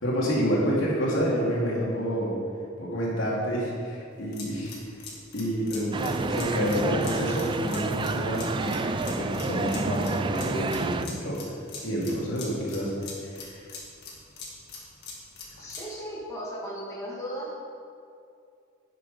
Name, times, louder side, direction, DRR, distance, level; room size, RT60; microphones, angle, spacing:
voice 1, 0.0-2.4 2.8-4.7 5.3-11.4 11.7-12.9 13.3-13.6, equal, 75° left, -5 dB, 2.6 m, -28 dB
sound 1, 4.1-15.9, left 4 dB, 55° left, 1.9 m, -43 dB
sound 2, 5.9-11.0, right 3 dB, 25° right, 0.3 m, -29 dB
voice 2, 15.6-17.7, equal, 15° left, -6 dB, 1.9 m, -37 dB
10.0 x 6.7 x 5.3 m, 2.4 s
head